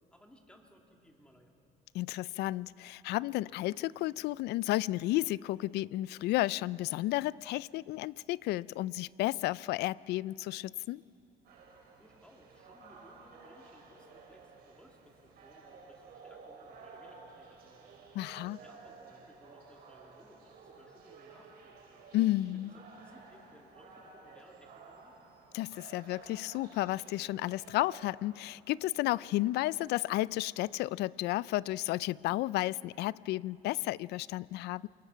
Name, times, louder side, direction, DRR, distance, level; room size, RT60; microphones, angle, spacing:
voice 1, 0.1-1.5 12.0-22.1 22.4-22.6 22.9-25.2, left 1 dB, 5° left, 3.0 m, -61 dB
voice 2, 1.9-11.0 18.1-18.6 22.1-22.7 25.5-34.9, left 16 dB, 80° left, 0.4 m, -32 dB
sound 1, 11.4-28.1, right 4 dB, 70° right, 3.8 m, -54 dB
27.5 x 20.0 x 5.7 m
cardioid pair, 110°, 17 cm